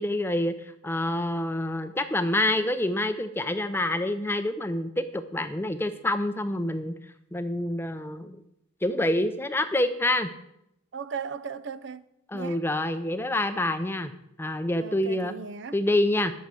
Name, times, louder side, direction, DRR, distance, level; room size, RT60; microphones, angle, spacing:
voice 1, 0.0-6.9 7.3-8.4 8.8-10.3 12.3-14.1 14.4-15.3 15.7-16.3, left 1 dB, 10° left, 0.4 m, -27 dB
voice 2, 10.9-12.0 12.3-12.6 14.8-15.7, right 6 dB, 60° right, 0.4 m, -37 dB
8.7 x 6.4 x 7.4 m
head